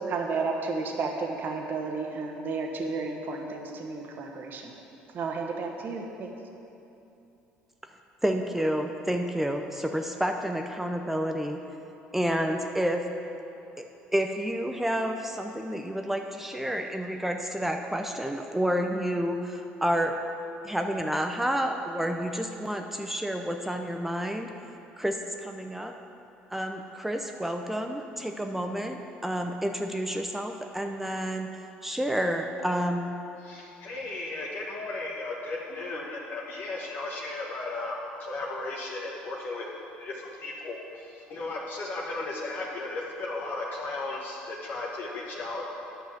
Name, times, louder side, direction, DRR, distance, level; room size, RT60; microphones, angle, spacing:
voice 1, 0.1-4.7 5.1-6.3, right 4 dB, 50° right, 2 dB, 1.3 m, -32 dB
voice 2, 8.2-11.6 12.1-13.1 13.8-20.1 20.6-24.5 25.0-25.9 26.5-31.5 31.8-33.2, equal, 5° right, 4 dB, 0.6 m, -29 dB
voice 3, 33.4-39.7 40.0-45.6, left 2 dB, 55° left, -3 dB, 1.2 m, -35 dB
9.3 x 5.5 x 7.3 m, 2.9 s
supercardioid pair, 80°, 4 cm